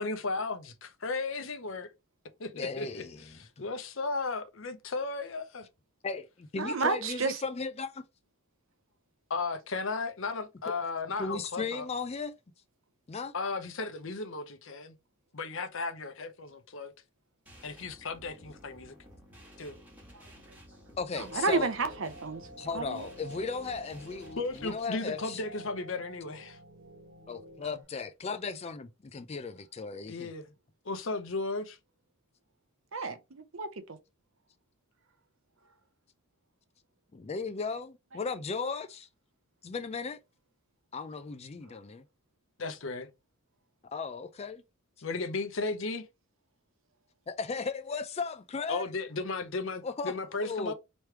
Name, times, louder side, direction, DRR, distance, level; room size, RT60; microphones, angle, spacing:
voice 1, 0.0-1.9 2.4-3.0 3.4-5.7 9.3-11.9 13.3-14.9 15.3-16.9 17.6-18.9 19.6-19.8 24.4-26.6 30.1-30.5 30.8-31.8 42.6-43.1 45.0-46.0 48.7-50.7, left 3 dB, 60° left, 0.7 m, -35 dB
voice 2, 2.5-3.6 6.0-8.0 10.7-10.8 11.2-12.3 13.1-13.3 21.0-21.7 22.6-25.4 27.3-30.3 37.1-39.1 39.6-40.2 40.9-42.0 43.9-44.6 47.3-48.8 49.8-50.2 50.4-50.7, left 4 dB, 30° left, 0.3 m, -36 dB
voice 3, 6.6-7.4 20.1-20.6 21.1-22.5 22.7-23.1 32.9-34.0 41.7-41.8, right 3 dB, 65° right, 0.7 m, -32 dB
sound 1, 17.5-24.8, equal, 10° right, 1.3 m, -54 dB
sound 2, 21.1-27.8, equal, 40° right, 1.1 m, -50 dB
3.2 x 3.1 x 4.5 m
head